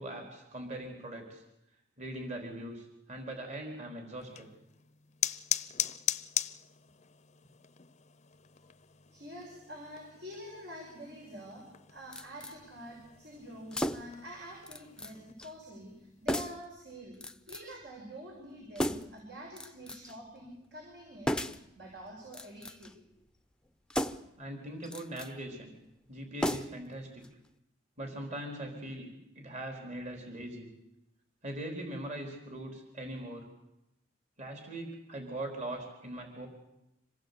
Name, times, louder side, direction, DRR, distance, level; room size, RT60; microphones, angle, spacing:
voice 1, 0.0-1.4 2.0-4.5 24.4-25.7 26.1-27.2 28.0-29.1 29.4-30.7 31.4-33.5 34.4-36.5, right 1 dB, 40° right, 2 dB, 4.2 m, -41 dB
sound 1, 4.2-15.3, left 9 dB, 40° left, 0.8 m, -40 dB
voice 2, 9.1-17.2 17.5-23.0, equal, 65° right, -1 dB, 6.3 m, -47 dB
sound 2, 12.1-12.6 13.7-14.2 14.7-15.1 15.4-15.5 16.3-16.7 17.2-17.8 18.8-19.2 19.6-20.2 21.3-21.7 22.3-22.9 23.9-24.4 24.8-25.3 26.4-26.9 27.2-27.3, equal, 5° left, 0.9 m, -35 dB
26.0 x 18.0 x 8.5 m, 0.86 s
head